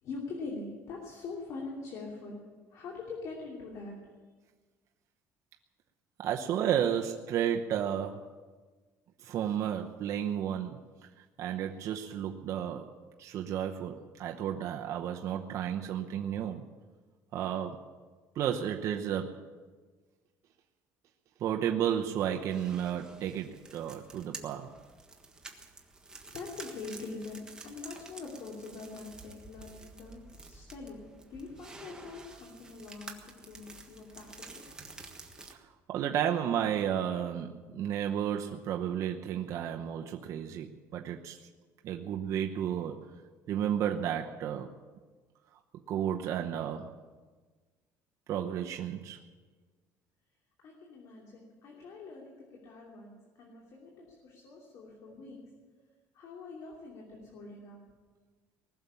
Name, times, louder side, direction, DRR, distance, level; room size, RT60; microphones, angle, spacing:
voice 1, 0.0-2.4 2.7-4.0 26.3-31.0 31.3-34.7 50.6-55.4 56.1-57.8, left 3 dB, 55° left, -1 dB, 2.9 m, -44 dB
voice 2, 6.2-8.3 9.2-10.8 11.4-16.6 17.3-17.9 18.3-19.5 21.4-24.7 35.5-35.6 35.9-41.4 41.8-43.1 43.5-44.7 45.9-46.9 48.3-49.2, right 9 dB, 50° right, 2 dB, 0.9 m, -32 dB
sound 1, 22.3-35.5, right 3 dB, 10° right, 1.5 m, -50 dB
20.0 x 7.0 x 9.9 m, 1.4 s
cardioid pair, 135°, 7 cm